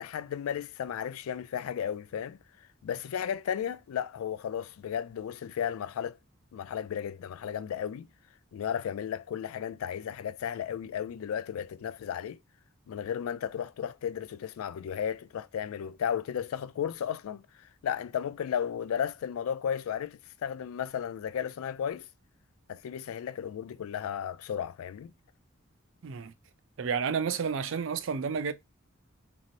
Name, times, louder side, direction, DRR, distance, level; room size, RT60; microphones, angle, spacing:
voice 1, 0.0-2.4 2.8-6.2 6.5-8.1 8.5-12.4 12.9-17.4 17.8-22.1 22.7-25.1, left 8 dB, 85° left, 0.3 m, -34 dB
voice 2, 26.8-28.5, right 6 dB, 65° right, 0.4 m, -30 dB
3.1 x 2.6 x 2.5 m
head